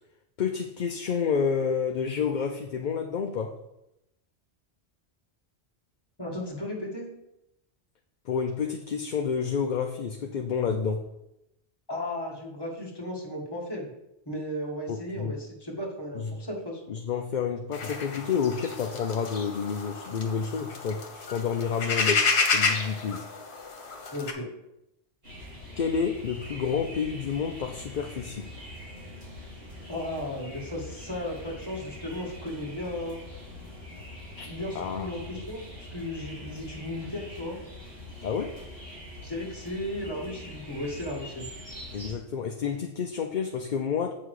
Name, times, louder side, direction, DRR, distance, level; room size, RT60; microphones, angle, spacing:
voice 1, 0.4-3.6 8.2-11.1 14.9-15.4 16.1-16.4 16.9-23.3 25.8-28.5 34.4-34.5 34.7-35.1 35.4-35.5 38.2-38.6 41.9-44.1, left 6 dB, 50° left, 4 dB, 0.6 m, -29 dB
voice 2, 6.2-7.1 11.9-13.9 14.3-16.8 24.1-24.5 29.9-33.2 34.5-37.6 39.2-41.5, left 1 dB, 20° left, -2 dB, 1.9 m, -35 dB
sound 1, 17.7-24.3, left 4 dB, 70° left, 1.4 m, -30 dB
sound 2, 25.2-42.2, left 1 dB, 55° right, 3.4 m, -43 dB
8.0 x 5.8 x 4.8 m, 0.85 s
omnidirectional pair, 1.1 m